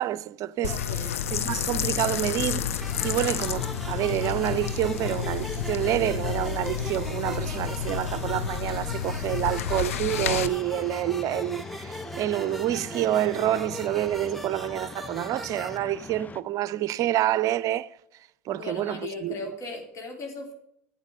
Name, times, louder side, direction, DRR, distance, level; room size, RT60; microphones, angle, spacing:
voice 1, 0.0-0.7 1.3-2.7 3.0-17.9 18.5-19.3, right 13 dB, 50° right, 0.5 m, -28 dB
sound 1, 0.6-10.5, left 8 dB, 80° left, 0.7 m, -30 dB
voice 2, 0.7-1.2 18.5-20.5, left 3 dB, 45° left, 3.3 m, -38 dB
sound 2, 1.3-16.4, left 5 dB, 20° left, 0.7 m, -44 dB
sound 3, 2.8-15.8, equal, ahead, 1.2 m, -40 dB
12.0 x 8.1 x 5.3 m
hypercardioid pair, 70°, 7 cm